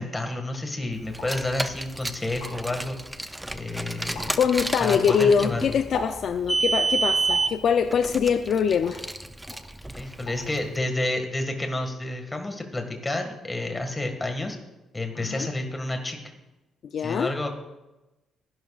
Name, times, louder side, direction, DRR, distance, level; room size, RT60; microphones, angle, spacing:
voice 1, 0.0-3.0 3.5-4.4 4.8-5.6 9.9-14.6 14.9-16.2 17.0-17.5, left 2 dB, 15° left, 4 dB, 1.8 m, -30 dB
Car, 1.1-10.6, right 3 dB, 5° right, 0.5 m, -30 dB
sound 1, 1.2-1.4 2.0-2.1 2.2-2.8 3.2-3.7 4.1-4.4 4.8-6.5 7.3-7.6 8.2-9.1 9.5-9.7 10.0-10.5 10.8-11.3, left 3 dB, 75° left, 3.4 m, -39 dB
voice 2, 4.4-9.0 15.2-15.5 16.9-17.3, left 7 dB, 55° left, 9 dB, 0.5 m, -23 dB
22.5 x 11.0 x 2.4 m, 1.0 s
cardioid pair, 140°, 0 cm